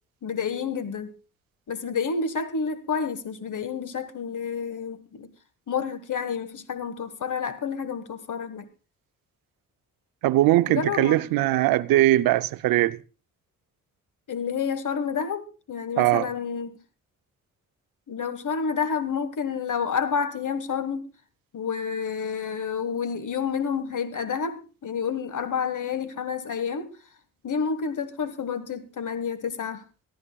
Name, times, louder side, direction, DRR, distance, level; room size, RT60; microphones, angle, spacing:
voice 1, 0.2-1.1 1.7-5.3 5.7-8.7 10.7-11.2 14.3-16.7 18.1-21.0 21.5-26.9 27.4-29.8, left 6 dB, 65° left, 1.6 m, -29 dB
voice 2, 10.2-13.0 16.0-16.3, right 15 dB, 90° right, 0.6 m, -20 dB
22.5 x 14.0 x 2.3 m
supercardioid pair, 50°, 33 cm